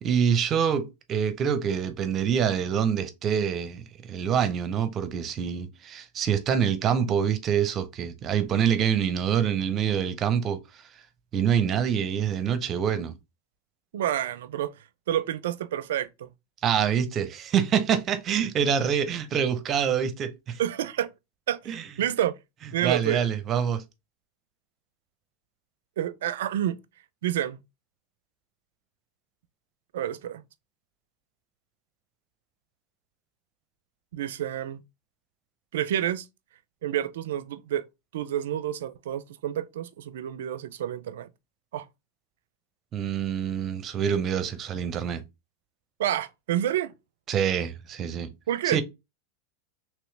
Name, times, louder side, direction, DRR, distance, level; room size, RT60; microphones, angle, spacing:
voice 1, 0.0-10.6 11.3-13.1 16.6-20.6 21.7-21.8 22.8-23.8 42.9-45.2 47.3-48.3 48.6-48.8, right 8 dB, 35° right, 0.6 m, -26 dB
voice 2, 13.9-14.7 15.1-16.3 20.6-21.1 21.5-21.6 22.0-22.4 22.7-23.2 26.0-26.8 27.2-27.6 29.9-30.4 34.1-34.8 35.7-36.3 36.8-37.8 38.1-41.3 41.7-41.9 46.0-46.9 48.5-48.8, right 11 dB, 75° right, 0.4 m, -28 dB
3.0 x 3.0 x 3.2 m
hypercardioid pair, 115°, 0 cm